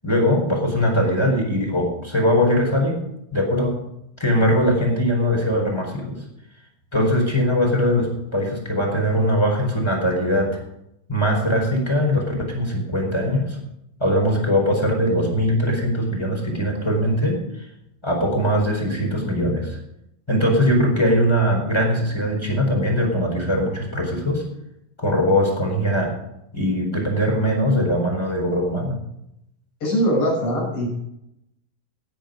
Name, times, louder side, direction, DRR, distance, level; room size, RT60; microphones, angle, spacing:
voice 1, 0.0-3.0 3.3-3.8 4.2-6.1 6.9-10.5 11.1-13.6 14.0-17.7 18.0-19.8 20.3-24.4 25.0-26.1 26.5-28.9, equal, 5° left, 0 dB, 4.0 m, -21 dB
voice 2, 29.8-30.9, equal, 40° left, -3 dB, 7.0 m, -21 dB
17.0 x 9.0 x 5.2 m, 0.81 s
omnidirectional pair, 4.1 m